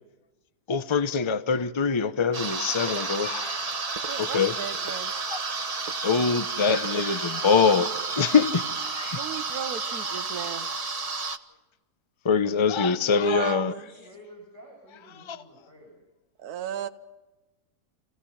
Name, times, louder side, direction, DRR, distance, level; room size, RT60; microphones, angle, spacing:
voice 1, 0.7-3.6 4.2-4.5 5.3-5.4 6.0-9.2 12.2-13.7 15.3-15.4, left 5 dB, 25° left, 0.6 m, -24 dB
sound 1, 2.3-11.4, right 4 dB, 25° right, 1.0 m, -31 dB
voice 2, 4.1-5.1 9.1-10.7 13.2-13.9 16.4-16.9, right 8 dB, 70° right, 1.5 m, -35 dB
voice 3, 13.1-16.0, equal, 45° left, 7.4 m, -51 dB
28.0 x 17.0 x 5.7 m
omnidirectional pair, 1.7 m